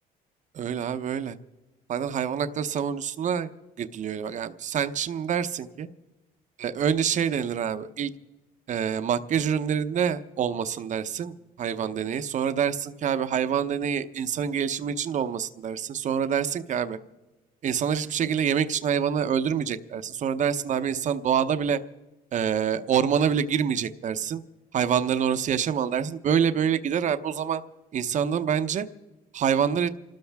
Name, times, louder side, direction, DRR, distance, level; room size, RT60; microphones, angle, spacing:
voice 1, 0.5-1.4 1.9-3.5 3.8-5.9 6.6-8.1 8.7-17.0 17.6-21.8 22.3-24.4 24.7-27.6 27.9-28.9 29.3-29.9, right 8 dB, 45° right, 11 dB, 0.8 m, -26 dB
28.5 x 13.0 x 3.5 m, 1.1 s
cardioid pair, 110°, 17 cm